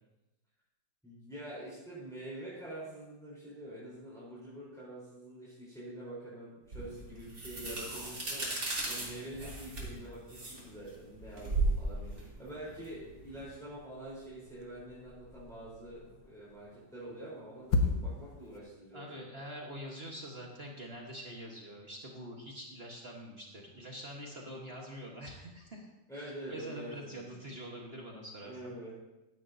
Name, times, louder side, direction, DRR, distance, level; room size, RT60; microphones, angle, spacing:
voice 1, 1.0-8.5 8.9-19.2 26.1-27.5 28.4-28.9, right 1 dB, ahead, -9 dB, 3.8 m, -46 dB
sound 1, 6.7-13.5, right 2 dB, 55° right, 3.7 m, -36 dB
voice 2, 7.7-8.0 18.9-25.9 26.1-28.8, equal, 35° right, -1 dB, 1.5 m, -45 dB
sound 2, 13.6-18.6, left 3 dB, 80° left, 1.7 m, -37 dB
15.5 x 11.0 x 2.7 m, 1.0 s
omnidirectional pair, 1.9 m